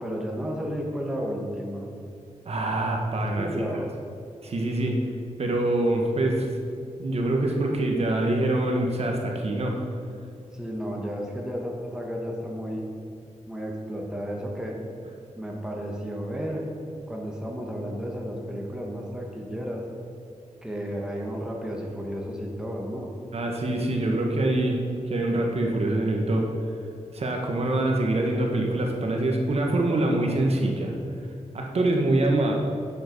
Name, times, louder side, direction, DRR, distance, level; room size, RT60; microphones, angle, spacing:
voice 1, 0.0-1.9 3.2-3.9 10.5-12.8 13.5-14.8 15.4-16.6 17.1-19.9 20.6-23.1, equal, 5° right, -1 dB, 1.4 m, -32 dB
voice 2, 2.4-3.5 4.4-5.0 5.4-6.4 7.0-9.8 23.3-24.8 25.1-26.5 27.1-30.9 31.5-32.5, right 1 dB, 55° right, 1 dB, 1.3 m, -24 dB
10.5 x 7.8 x 5.3 m, 2.4 s
wide cardioid pair, 135°, 12 cm